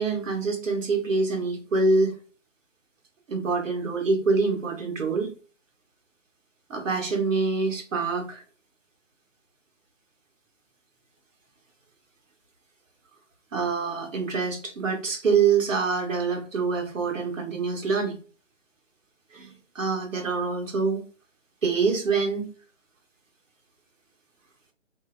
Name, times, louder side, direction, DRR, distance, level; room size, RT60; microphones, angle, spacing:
voice 1, 0.0-2.1 3.3-5.3 6.7-8.4 13.5-18.2 19.3-19.5 19.7-21.0 21.6-22.5, right 4 dB, 90° right, 3 dB, 1.0 m, -25 dB
2.6 x 2.0 x 2.3 m, 0.37 s
hypercardioid pair, 175°, 37 cm